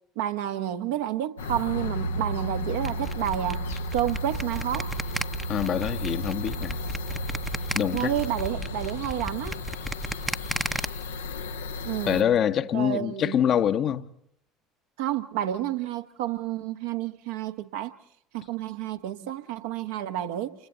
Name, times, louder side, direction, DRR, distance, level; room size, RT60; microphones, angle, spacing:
voice 1, 0.2-3.6 3.9-4.9 7.9-9.6 11.8-12.3 12.7-13.4 15.0-17.9 18.3-20.5, right 12 dB, 65° right, 1.1 m, -30 dB
sound 1, 1.4-12.2, equal, 75° left, 0.8 m, -33 dB
sound 2, 2.8-10.9, right 1 dB, 5° right, 0.8 m, -33 dB
voice 2, 5.5-6.8 7.7-8.1 12.1-14.1, left 9 dB, 45° left, 0.9 m, -25 dB
29.5 x 25.0 x 4.0 m
figure-of-eight pair, 60°, 0 cm